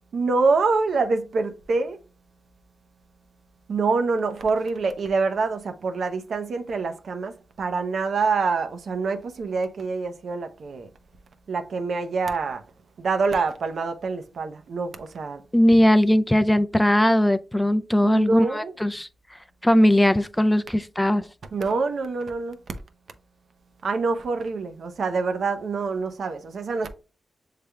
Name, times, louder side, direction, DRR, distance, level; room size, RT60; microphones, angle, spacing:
voice 1, 0.1-2.0 3.7-10.9 11.5-12.6 13.0-15.4 18.0-18.8 21.5-22.6 23.8-26.9, right 4 dB, 70° right, 0.6 m, -26 dB
voice 2, 15.5-21.3, left 1 dB, 10° left, 0.3 m, -19 dB
6.7 x 3.3 x 2.2 m
cardioid pair, 75°, 0 cm